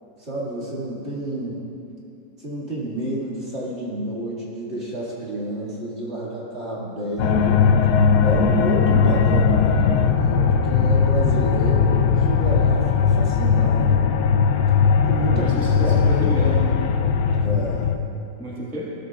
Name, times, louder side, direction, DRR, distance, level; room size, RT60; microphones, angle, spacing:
voice 1, 0.2-1.6 2.4-7.6 8.2-14.0 15.0-15.5 15.8-16.0 16.3-16.5 17.4-17.9, right 1 dB, 35° right, -6 dB, 2.4 m, -30 dB
sound 1, 7.2-18.0, left 6 dB, 70° left, 1.1 m, -18 dB
voice 2, 15.3-16.8 18.4-18.9, equal, 5° left, -6 dB, 1.3 m, -30 dB
16.0 x 13.0 x 2.4 m, 2.7 s
omnidirectional pair, 1.9 m